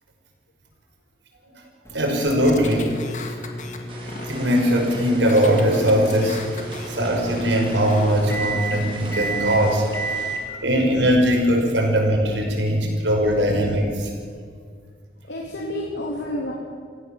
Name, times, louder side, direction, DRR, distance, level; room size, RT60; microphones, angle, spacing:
sound 1, 1.8-12.2, right 2 dB, 15° left, 2.7 m, -33 dB
voice 1, 1.9-3.0 4.2-9.9 10.6-14.1, equal, 90° right, 1 dB, 5.8 m, -20 dB
sound 2, 2.3-3.8 4.1-5.0 5.3-6.9 7.3-8.1, left 4 dB, 40° left, 2.1 m, -38 dB
sound 3, 3.9-10.4, right 1 dB, 30° right, 4.4 m, -40 dB
voice 2, 15.2-16.5, left 1 dB, 90° left, -2 dB, 3.5 m, -30 dB
27.0 x 16.0 x 7.4 m, 2.1 s
head